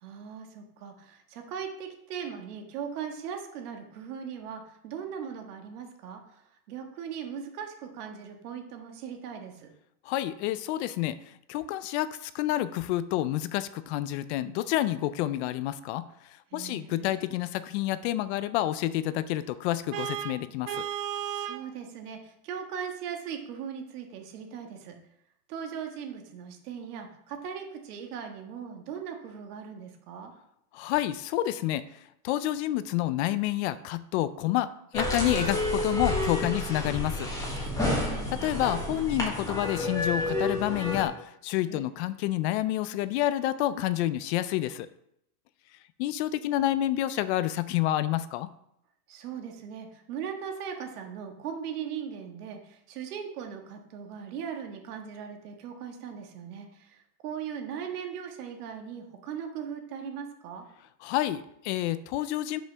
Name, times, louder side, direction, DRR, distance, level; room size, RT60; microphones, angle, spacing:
voice 1, 0.0-6.4 6.7-9.7 16.5-17.2 21.3-24.9 25.5-30.3 37.7-38.5 41.6-41.9 49.1-60.7, right 7 dB, 80° right, 4 dB, 1.7 m, -39 dB
voice 2, 10.1-11.2 11.5-16.0 16.5-20.8 30.7-31.8 32.2-34.7 34.9-37.3 38.3-44.9 46.0-48.5 61.0-62.6, left 14 dB, 50° left, 14 dB, 0.5 m, -29 dB
Vehicle horn car horn honking, 19.9-21.7, right 10 dB, 45° right, 0.6 m, -34 dB
sound 1, 34.9-41.0, left 1 dB, 5° left, 1.5 m, -30 dB
6.2 x 5.2 x 5.7 m, 0.76 s
supercardioid pair, 150°, 45 cm